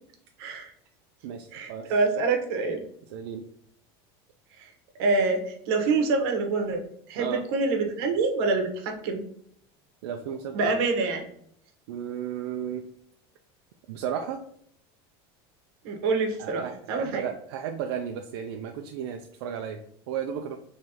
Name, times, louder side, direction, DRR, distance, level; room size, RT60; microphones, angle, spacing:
voice 1, 0.4-0.7 1.5-2.8 5.0-6.8 7.1-9.2 10.5-11.3 15.8-17.2, right 3 dB, 70° right, 4 dB, 1.0 m, -26 dB
voice 2, 1.2-1.9 3.1-3.5 7.2-7.4 10.0-10.7 11.9-12.9 13.9-14.4 16.4-20.6, right 8 dB, 90° right, 4 dB, 0.4 m, -34 dB
3.8 x 3.2 x 2.8 m, 0.67 s
cardioid pair, 160°, 13 cm